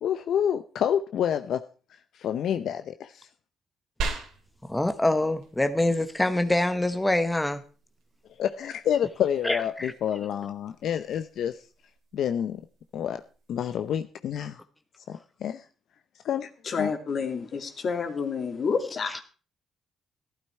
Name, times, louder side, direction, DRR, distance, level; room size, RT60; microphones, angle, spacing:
voice 1, 0.0-1.7 2.2-3.3 8.4-11.6 12.1-12.6 12.9-13.2 13.5-14.6 15.1-15.6 16.2-16.5 16.8-16.9, left 9 dB, 70° left, 9 dB, 0.6 m, -28 dB
sound 1, 4.0-14.0, right 4 dB, 85° right, 2.6 m, -42 dB
voice 2, 4.7-7.6 9.4-9.9, left 1 dB, 10° left, 9 dB, 1.0 m, -25 dB
voice 3, 16.6-19.2, left 5 dB, 50° left, 6 dB, 2.4 m, -29 dB
14.5 x 12.0 x 4.4 m, 0.37 s
cardioid pair, 90°, 0 cm